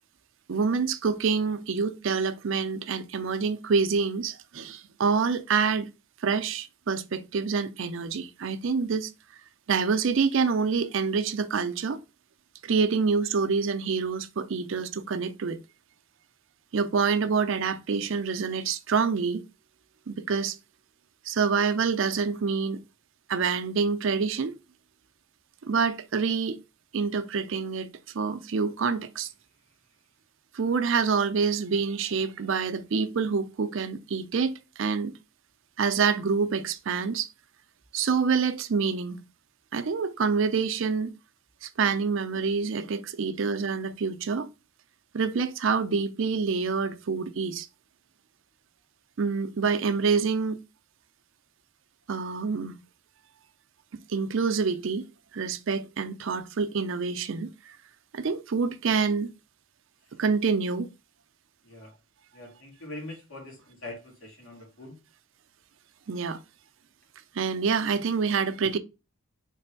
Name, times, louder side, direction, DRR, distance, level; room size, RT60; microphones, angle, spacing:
voice 1, 0.5-5.9 6.2-9.1 9.7-12.0 12.6-15.6 16.7-19.4 20.1-20.6 21.3-22.8 23.3-24.6 25.6-26.6 26.9-27.9 28.1-29.3 30.5-35.1 35.8-37.3 37.9-39.2 39.7-41.1 41.6-44.5 45.1-47.7 49.2-50.6 52.1-52.8 54.1-55.0 55.3-57.5 58.1-59.3 60.2-60.9 66.1-66.4 67.4-68.8, right 5 dB, 60° right, 0.5 m, -27 dB
voice 2, 61.6-62.0 62.3-65.0, left 2 dB, 70° left, 2.0 m, -43 dB
3.4 x 3.2 x 4.4 m
head